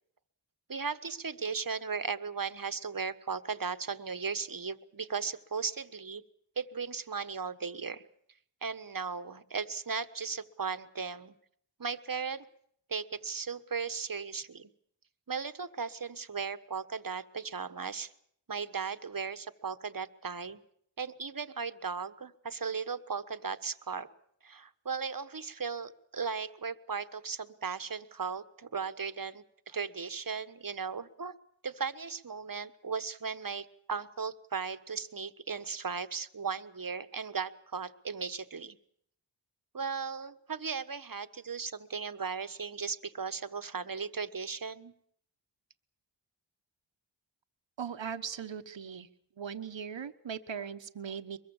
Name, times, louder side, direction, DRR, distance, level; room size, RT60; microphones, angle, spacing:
voice 1, 0.7-6.2 6.6-8.0 8.6-11.3 11.8-12.5 12.9-14.7 15.3-18.1 18.5-20.6 21.0-24.1 24.4-31.3 31.6-38.8 39.7-44.9, right 5 dB, 45° right, 12 dB, 1.4 m, -37 dB
voice 2, 47.8-49.1 49.4-51.4, right 7 dB, 75° right, 9 dB, 1.3 m, -39 dB
23.0 x 22.0 x 7.2 m, 0.68 s
cardioid pair, 40°, 45 cm